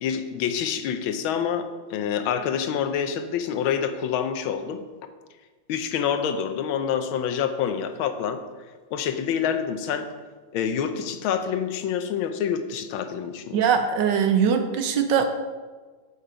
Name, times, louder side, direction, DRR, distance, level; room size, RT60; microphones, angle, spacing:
voice 1, 0.0-4.8 5.7-8.4 8.9-10.1 10.5-13.6, left 8 dB, 85° left, 8 dB, 1.5 m, -27 dB
voice 2, 13.5-15.2, right 7 dB, 70° right, 6 dB, 1.2 m, -21 dB
8.1 x 5.6 x 5.0 m, 1.4 s
omnidirectional pair, 2.2 m